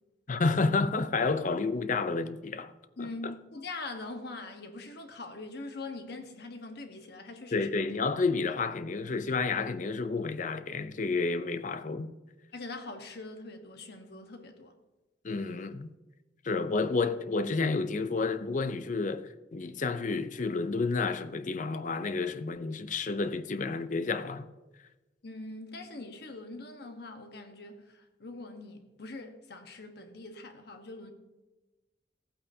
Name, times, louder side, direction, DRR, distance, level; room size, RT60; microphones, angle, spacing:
voice 1, 0.3-2.7 3.0-3.3 7.5-12.1 15.2-15.9 16.4-24.5, left 3 dB, 45° left, 0.6 m, -30 dB
voice 2, 3.0-7.7 12.5-14.7 25.2-31.1, left 2 dB, 60° left, 1.2 m, -43 dB
15.5 x 8.7 x 2.8 m
head